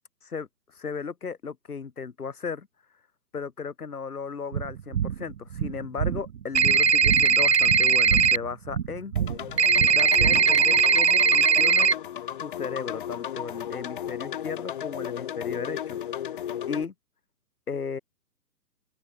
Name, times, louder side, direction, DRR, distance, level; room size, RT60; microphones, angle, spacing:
voice 1, 0.2-2.7 3.3-9.1 9.6-11.9 12.4-16.0 16.3-16.9 17.7-18.0, left 5 dB, 65° left, 3.4 m, -36 dB
sound 1, 4.5-10.8, right 9 dB, 55° right, 0.5 m, -30 dB
sound 2, 6.6-8.4 9.6-11.9, right 5 dB, 85° right, 1.1 m, -19 dB
sound 3, 9.2-16.9, left 10 dB, 30° left, 1.0 m, -35 dB
open air
figure-of-eight pair, 135°, 48 cm